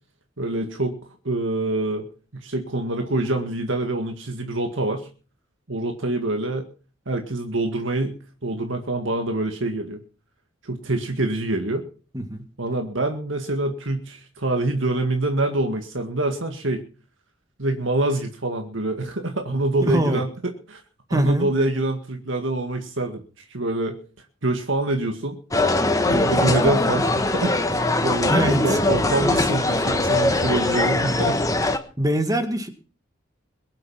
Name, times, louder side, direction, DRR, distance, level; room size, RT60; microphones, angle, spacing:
voice 1, 0.4-1.0 1.2-2.1 2.3-5.1 5.7-6.7 7.1-8.1 8.4-10.0 10.6-11.9 12.6-16.8 17.6-20.3 20.7-20.8 21.1-24.0 24.4-25.4 26.1-27.5 28.0-31.4, right 2 dB, 70° right, 4 dB, 2.1 m, -25 dB
voice 2, 12.1-12.4 19.8-20.2 21.1-21.5 28.3-28.8 29.3-29.4 32.0-32.7, right 1 dB, 20° right, 7 dB, 2.0 m, -23 dB
sound 1, 25.5-31.8, left 2 dB, 15° left, 1.3 m, -21 dB
22.5 x 7.9 x 5.8 m, 0.38 s
head